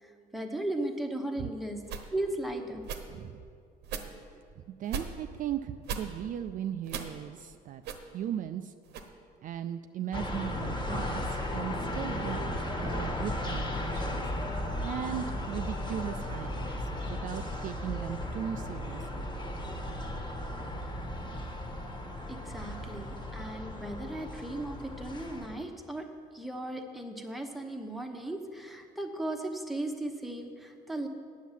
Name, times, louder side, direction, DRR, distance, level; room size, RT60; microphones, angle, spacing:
voice 1, 0.0-2.9 22.3-26.1 26.3-31.1, right 1 dB, ahead, 2 dB, 1.0 m, -36 dB
sound 1, 1.8-2.1 2.8-3.0 3.8-4.1 4.8-5.1 5.8-6.0 6.8-7.2 7.8-8.0 8.8-9.1, right 6 dB, 80° right, 1.0 m, -37 dB
voice 2, 3.1-3.4 4.8-7.8 8.1-8.7 9.4-14.2 14.8-19.3 22.8-23.0, right 10 dB, 50° right, 9 dB, 0.4 m, -38 dB
sound 2, 10.1-25.6, left 1 dB, 25° left, 1.4 m, -35 dB
9.3 x 7.2 x 7.3 m, 2.2 s
cardioid pair, 110°, 17 cm